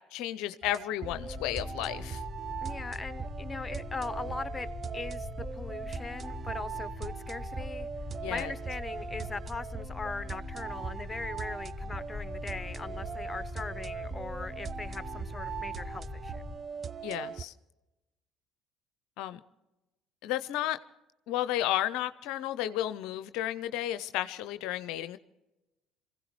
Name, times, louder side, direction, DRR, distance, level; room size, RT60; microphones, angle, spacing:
voice 1, 0.1-2.2 8.2-8.5 17.0-17.5 19.2-19.4 20.2-20.8 21.3-25.2, left 13 dB, 70° left, 12 dB, 0.5 m, -32 dB
sound 1, 0.6-17.4, right 7 dB, 40° right, 0.5 m, -41 dB
sound 2, 1.1-16.6, left 2 dB, 10° right, 4.2 m, -41 dB
voice 2, 2.6-4.7 4.9-7.9 8.3-16.4, left 3 dB, 20° left, 14 dB, 0.9 m, -40 dB
26.5 x 16.0 x 3.1 m, 1.0 s
hypercardioid pair, 60°, 0 cm